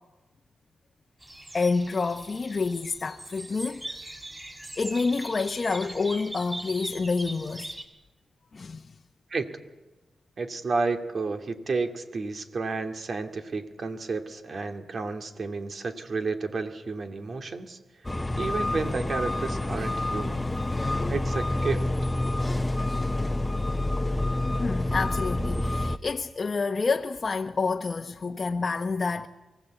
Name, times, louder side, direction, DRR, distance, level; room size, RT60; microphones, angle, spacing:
sound 1, 1.2-7.8, right 1 dB, 20° right, 4.9 m, -41 dB
voice 1, 1.5-3.9 4.7-7.7 8.5-8.9 24.6-29.3, left 4 dB, 45° left, 1.0 m, -28 dB
voice 2, 10.4-17.8 18.4-20.4 21.1-21.9, right 4 dB, 55° right, 2.2 m, -31 dB
sound 2, 18.0-26.0, left 1 dB, 20° left, 0.9 m, -28 dB
24.5 x 16.5 x 8.1 m
cardioid pair, 60°, 0 cm